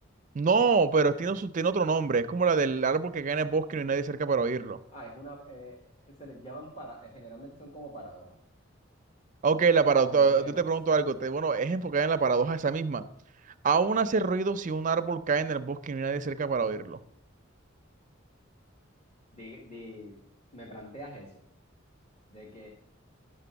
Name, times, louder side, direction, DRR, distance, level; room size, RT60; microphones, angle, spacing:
voice 1, 0.3-4.8 9.4-13.0 13.6-17.0, right 5 dB, 40° right, 11 dB, 0.4 m, -26 dB
voice 2, 4.9-8.4 10.1-10.7 19.3-20.2 20.5-21.3 22.3-22.7, right 1 dB, 35° left, -1 dB, 1.8 m, -45 dB
11.0 x 6.0 x 6.8 m, 0.71 s
head